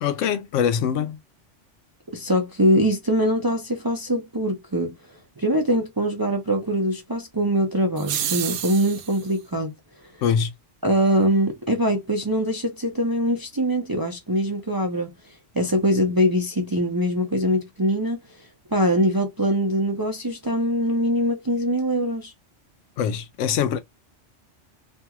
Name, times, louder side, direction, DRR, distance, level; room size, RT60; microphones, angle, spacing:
voice 1, 0.0-1.2 10.2-10.5 23.0-23.8, left 8 dB, 80° left, 0.9 m, -23 dB
voice 2, 2.1-5.0 5.4-9.7 10.8-15.1 15.5-18.2 18.7-22.3, equal, 30° right, 0.4 m, -23 dB
sound 1, 8.0-9.3, right 10 dB, 75° right, 0.8 m, -29 dB
2.9 x 2.5 x 2.3 m
omnidirectional pair, 1.3 m